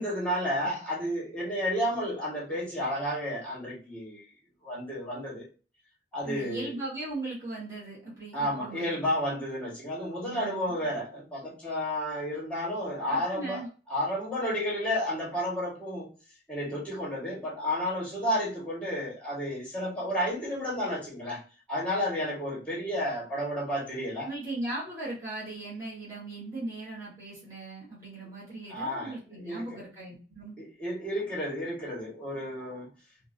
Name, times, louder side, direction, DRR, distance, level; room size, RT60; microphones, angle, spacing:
voice 1, 0.0-4.2 4.6-5.5 6.1-6.7 8.3-13.6 13.9-16.1 16.5-21.4 21.7-24.3 28.7-29.8 30.6-32.9, equal, 5° left, -5 dB, 1.4 m, -31 dB
voice 2, 6.2-9.1 10.2-10.9 13.1-13.7 24.2-30.6, right 2 dB, 15° right, -7 dB, 1.3 m, -38 dB
2.9 x 2.6 x 2.4 m, 0.36 s
head